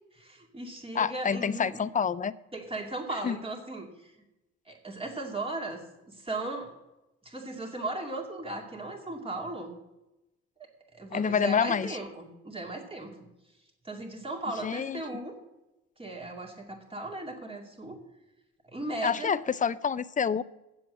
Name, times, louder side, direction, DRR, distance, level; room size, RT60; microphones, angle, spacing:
voice 1, 0.1-1.8 2.5-4.1 4.7-6.7 7.2-9.8 10.6-10.7 10.9-13.1 13.8-15.4 16.0-18.0 18.7-19.3, right 2 dB, 20° right, 0 dB, 2.4 m, -37 dB
voice 2, 0.9-2.3 3.2-3.4 11.1-12.0 14.6-15.0 19.0-20.4, left 6 dB, 25° left, 17 dB, 0.4 m, -27 dB
7.9 x 7.6 x 7.7 m, 0.95 s
cardioid pair, 90°, 30 cm